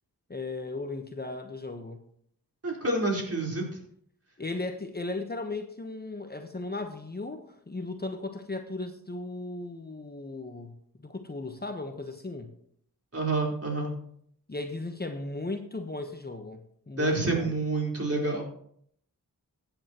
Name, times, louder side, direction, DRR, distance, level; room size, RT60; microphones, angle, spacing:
voice 1, 0.3-2.0 4.4-12.5 14.5-17.5, left 2 dB, 25° left, 6 dB, 1.2 m, -36 dB
voice 2, 2.6-3.8 13.1-13.9 17.0-18.4, right 2 dB, 40° right, -1 dB, 4.3 m, -28 dB
15.0 x 9.0 x 3.0 m, 0.66 s
cardioid pair, 45°, 37 cm